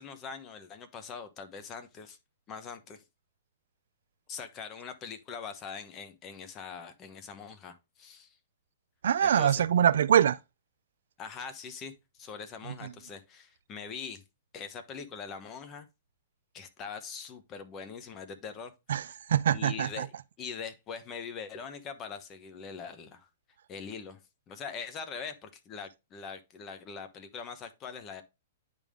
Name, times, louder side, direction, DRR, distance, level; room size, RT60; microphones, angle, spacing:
voice 1, 0.0-2.2 2.5-3.0 4.3-8.4 9.2-9.6 11.2-14.2 14.5-15.9 16.5-18.7 19.5-20.1 20.4-23.3 23.7-24.2 24.5-28.2, left 6 dB, 25° left, 1.1 m, -42 dB
voice 2, 9.0-10.4 18.9-20.1, right 9 dB, 75° right, 0.4 m, -24 dB
10.0 x 3.7 x 3.7 m
hypercardioid pair, 150°, 0 cm